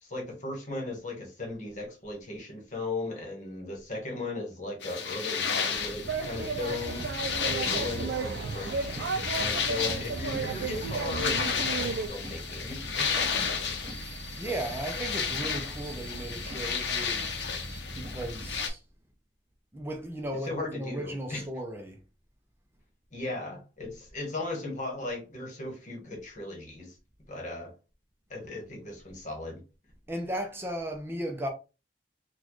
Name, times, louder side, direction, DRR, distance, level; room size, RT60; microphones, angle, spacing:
voice 1, 0.0-7.0 7.4-13.9 20.5-21.4 23.1-26.9 27.3-27.7 28.3-29.6, left 2 dB, 45° left, 1.2 m, -37 dB
sound 1, 4.8-18.7, left 6 dB, 80° left, 0.7 m, -33 dB
sound 2, 5.7-18.6, right 1 dB, 45° right, 1.0 m, -43 dB
sound 3, 6.1-12.1, right 5 dB, 85° right, 0.4 m, -33 dB
voice 2, 14.4-17.3 18.0-18.8 19.7-22.0 30.1-31.5, right 1 dB, 15° right, 0.5 m, -36 dB
4.1 x 2.3 x 3.0 m
head